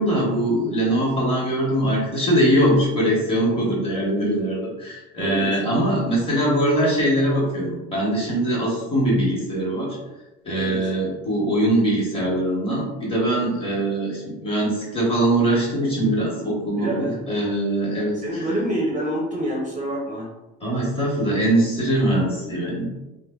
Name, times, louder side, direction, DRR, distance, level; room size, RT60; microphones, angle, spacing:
voice 1, 0.0-10.0 10.4-18.4 20.6-22.9, right 1 dB, 20° left, -4 dB, 1.0 m, -22 dB
voice 2, 5.2-5.5 10.5-10.9 16.7-17.2 17.9-20.3, right 1 dB, 25° right, -2 dB, 0.5 m, -27 dB
3.1 x 2.1 x 2.3 m, 1.0 s
supercardioid pair, 115°, 29 cm